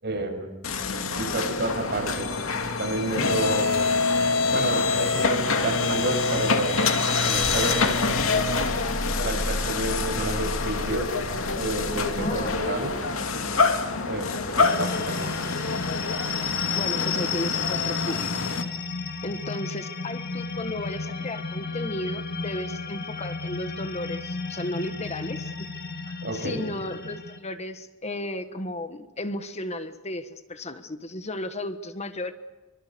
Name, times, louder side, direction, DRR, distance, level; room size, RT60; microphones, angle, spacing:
voice 1, 0.0-0.6 1.1-2.3 2.8-3.8 4.5-6.8 7.2-7.9 8.2-8.6 9.2-11.1 11.5-12.9 14.0-15.4 26.2-26.6, right 2 dB, 55° right, 3 dB, 7.0 m, -30 dB
sound 1, 0.6-18.6, left 4 dB, 85° left, 2.6 m, -26 dB
voice 2, 12.1-12.5 16.7-18.3 19.2-25.7 26.3-32.3, left 1 dB, 35° left, 10 dB, 1.4 m, -34 dB
sound 2, 14.6-27.4, left 5 dB, 50° left, 2.1 m, -32 dB
26.5 x 24.5 x 6.9 m, 1.1 s
head